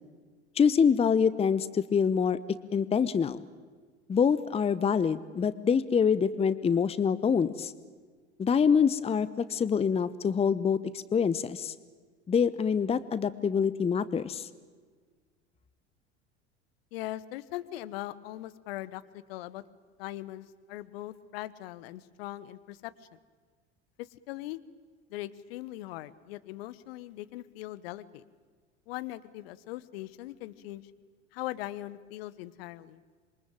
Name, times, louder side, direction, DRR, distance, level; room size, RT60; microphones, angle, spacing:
voice 1, 0.6-2.4 2.7-3.4 4.1-7.7 8.4-11.7 12.3-14.5, left 6 dB, 15° left, 16 dB, 0.9 m, -25 dB
voice 2, 16.9-19.6 20.0-23.2 24.0-24.6 25.1-28.2 28.9-30.8 31.3-33.0, left 15 dB, 55° left, 15 dB, 1.4 m, -40 dB
27.0 x 23.5 x 9.0 m, 1.5 s
figure-of-eight pair, 75°, 35 cm